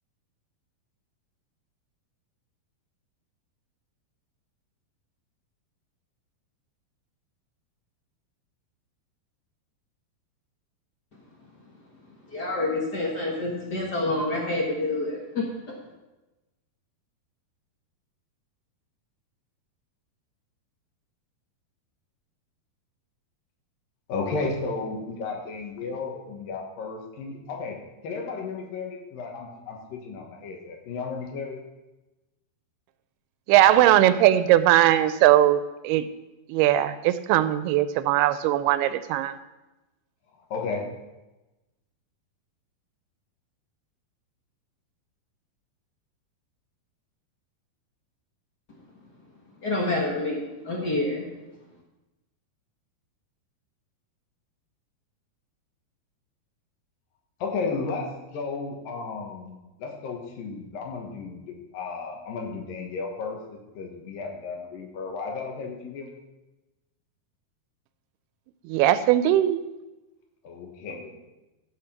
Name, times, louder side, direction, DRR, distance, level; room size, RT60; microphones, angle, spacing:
voice 1, 12.3-15.7 49.6-51.2, left 2 dB, 85° left, -2 dB, 0.9 m, -28 dB
voice 2, 24.1-27.8 28.0-31.6 40.3-40.9 57.4-66.2 70.4-71.2, left 4 dB, 65° left, 1 dB, 3.1 m, -34 dB
voice 3, 33.5-36.1 36.5-39.4 68.7-69.6, right 13 dB, 85° right, 13 dB, 2.5 m, -20 dB
15.0 x 5.1 x 5.9 m, 1.0 s
omnidirectional pair, 4.5 m